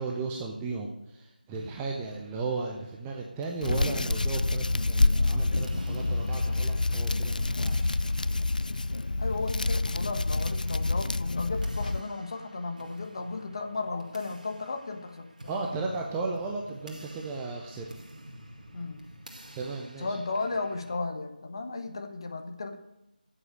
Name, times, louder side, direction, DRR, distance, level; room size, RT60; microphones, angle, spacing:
voice 1, 0.0-7.9 15.5-17.9 19.6-20.2, right 3 dB, 5° right, 0 dB, 0.5 m, -35 dB
sound 1, 1.5-21.0, right 1 dB, 55° right, 2.1 m, -50 dB
Hands, 3.6-12.0, left 2 dB, 60° left, 0.3 m, -27 dB
voice 2, 9.2-15.3 18.7-19.1 20.0-22.8, left 3 dB, 30° left, 5 dB, 1.2 m, -34 dB
12.0 x 7.7 x 8.2 m, 0.93 s
figure-of-eight pair, 160°, 5 cm